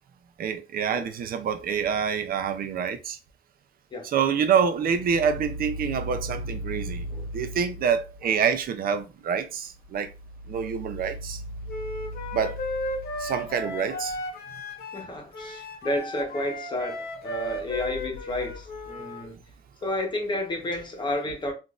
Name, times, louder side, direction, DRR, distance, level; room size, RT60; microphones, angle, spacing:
voice 1, 0.4-3.2 4.0-7.1 7.3-10.1 10.5-11.4 12.3-12.6 13.2-14.2, right 7 dB, 60° right, 0.5 m, -26 dB
sound 1, 4.7-8.4 9.8-14.1, equal, 10° left, 1.4 m, -38 dB
Wind instrument woodwind instrument, 11.7-19.2, left 1 dB, 65° left, 0.9 m, -35 dB
voice 2, 14.9-19.4 19.8-21.5, left 1 dB, 25° left, 0.9 m, -31 dB
3.7 x 2.5 x 2.4 m
cardioid pair, 135°, 17 cm